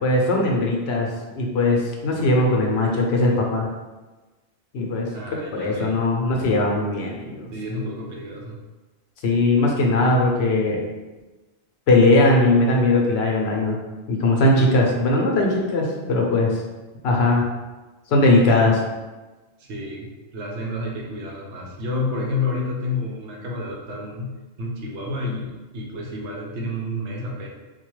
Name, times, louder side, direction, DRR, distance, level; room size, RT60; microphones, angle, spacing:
voice 1, 0.0-3.7 4.7-7.5 9.2-10.8 11.9-13.8 14.1-16.6 17.0-17.5 18.1-18.8, left 2 dB, 70° left, -1 dB, 0.8 m, -19 dB
voice 2, 5.1-6.0 7.5-8.6 19.6-27.5, left 2 dB, 85° right, -1 dB, 1.0 m, -30 dB
3.9 x 2.2 x 3.0 m, 1.2 s
omnidirectional pair, 1.1 m